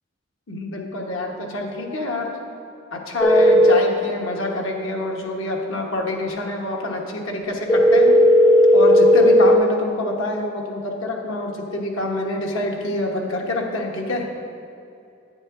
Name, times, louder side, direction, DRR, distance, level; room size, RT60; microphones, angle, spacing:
voice 1, 0.5-2.3 2.9-8.1 8.7-14.3, left 2 dB, 90° left, 0 dB, 1.1 m, -26 dB
sound 1, 3.2-3.7 7.7-9.6, equal, 15° left, 0.4 m, -13 dB
9.7 x 8.7 x 2.5 m, 2.5 s
head